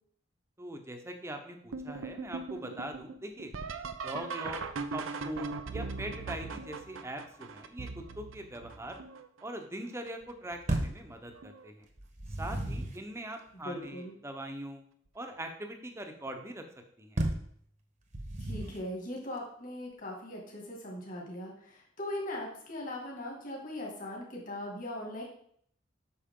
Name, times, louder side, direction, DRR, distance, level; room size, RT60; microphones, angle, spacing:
voice 1, 0.6-3.5 4.0-4.6 4.9-9.0 9.4-11.9 12.4-14.8 15.1-16.6 17.0-17.2, right 1 dB, 15° right, 4 dB, 0.9 m, -42 dB
sound 1, 1.7-9.4 10.1-10.6 11.0-11.7 13.0-13.1 13.8-14.1 16.3-16.4 18.7-18.8, right 4 dB, 85° right, 0.7 m, -40 dB
sound 2, 10.7-11.1 12.0-13.0 17.2-17.5 18.1-18.9, right 1 dB, 35° right, 1.1 m, -33 dB
voice 2, 13.5-14.1 18.4-25.2, left 1 dB, 40° left, -2 dB, 2.2 m, -40 dB
8.6 x 6.4 x 3.8 m, 0.64 s
head